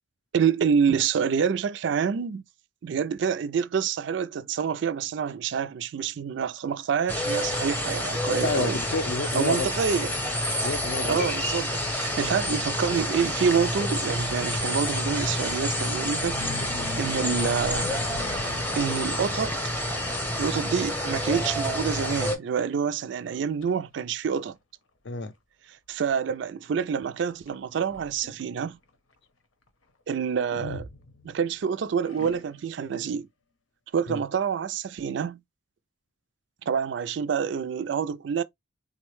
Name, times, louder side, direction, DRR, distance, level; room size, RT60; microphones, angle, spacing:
voice 1, 0.3-2.4 2.8-8.8 9.3-10.1 11.0-16.4 17.0-17.9 18.8-19.6 20.4-24.6 25.9-28.8 30.1-30.9 31.2-33.3 33.9-35.4 36.7-38.4, right 6 dB, 65° right, 0.3 m, -27 dB
sound 1, 7.1-22.4, left 1 dB, 10° left, 0.6 m, -28 dB
voice 2, 8.4-9.7 10.6-11.2 25.0-25.3 34.1-34.2, left 3 dB, 60° left, 0.5 m, -29 dB
sound 2, 16.0-19.3 19.9-20.1 20.5-20.9 21.2-21.3 22.0-22.1 22.6-22.7 23.3-23.7 24.5-24.6 27.5-28.5 30.5-31.6 32.1-32.8, left 2 dB, 90° left, 0.8 m, -40 dB
3.8 x 2.1 x 3.1 m
head